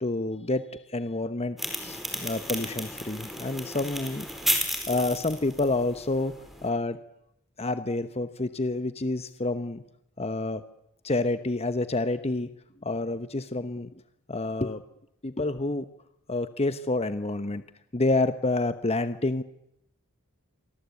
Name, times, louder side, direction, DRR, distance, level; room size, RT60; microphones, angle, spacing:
voice 1, 0.0-4.2 4.9-6.3 6.6-7.0 7.6-9.8 10.2-10.6 11.0-12.5 12.8-13.9 14.3-14.8 15.2-15.8 16.3-17.6 17.9-19.4, left 2 dB, 30° left, 11 dB, 1.0 m, -28 dB
sound 1, 1.6-6.7, equal, ahead, 4.7 m, -33 dB
27.5 x 24.0 x 8.4 m, 0.82 s
head